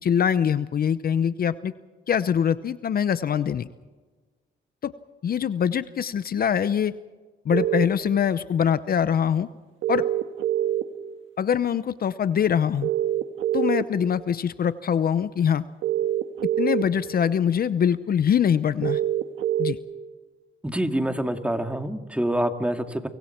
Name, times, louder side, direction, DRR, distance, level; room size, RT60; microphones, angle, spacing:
voice 1, 0.0-1.7 2.1-3.7 4.8-4.9 5.2-6.9 7.4-9.5 9.9-10.0 11.4-12.9 13.5-15.7 16.6-19.0 19.6-19.8, left 8 dB, 50° left, 14 dB, 0.8 m, -23 dB
sound 1, 7.5-7.8 9.8-10.8 12.8-13.8 15.8-16.8 18.8-19.7, right 12 dB, 80° right, 1.6 m, -24 dB
voice 2, 20.6-23.1, right 1 dB, 5° right, 6 dB, 2.2 m, -26 dB
29.0 x 24.5 x 4.5 m, 1.3 s
cardioid pair, 90°, 20 cm